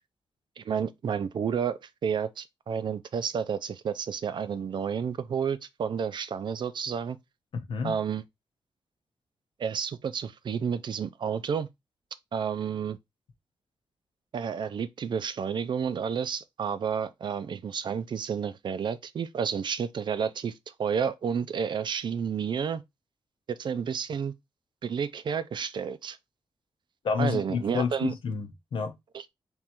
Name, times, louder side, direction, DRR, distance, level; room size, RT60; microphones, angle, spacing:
voice 1, 0.6-7.2 7.8-8.2 9.6-11.7 12.3-13.0 14.3-20.5 20.8-22.8 23.5-24.3 24.8-26.2 27.2-28.1 29.1-29.2, right 7 dB, 65° right, 0.4 m, -30 dB
voice 2, 7.5-8.0 27.0-28.9, left 5 dB, 85° left, 0.9 m, -30 dB
3.7 x 3.1 x 4.3 m
wide cardioid pair, 130°, 9 cm